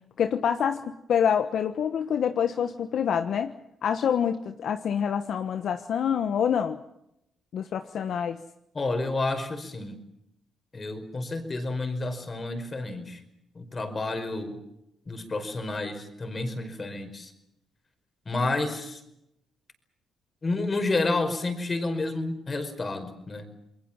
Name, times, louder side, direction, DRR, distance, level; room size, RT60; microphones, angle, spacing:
voice 1, 0.2-3.5 3.8-6.8 7.5-8.4, left 8 dB, 65° left, 9 dB, 1.2 m, -26 dB
voice 2, 8.7-10.0 10.7-13.2 13.5-14.6 15.1-17.3 18.2-19.0 20.4-23.5, left 2 dB, 30° left, 7 dB, 5.2 m, -30 dB
28.5 x 21.5 x 7.4 m, 0.80 s
cardioid pair, 90°, 0 cm